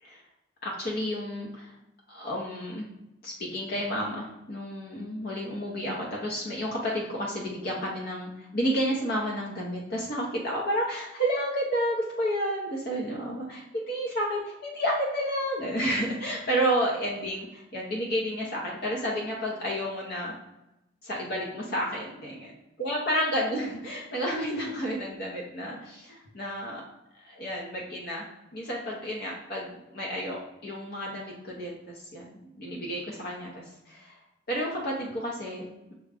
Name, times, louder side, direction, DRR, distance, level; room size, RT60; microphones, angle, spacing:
voice 1, 0.6-1.7 2.1-2.9 3.2-20.3 21.0-22.5 22.8-26.8 27.2-28.3 28.5-34.2 34.5-35.9, equal, 55° left, -3 dB, 0.8 m, -31 dB
6.2 x 2.3 x 3.4 m, 0.91 s
head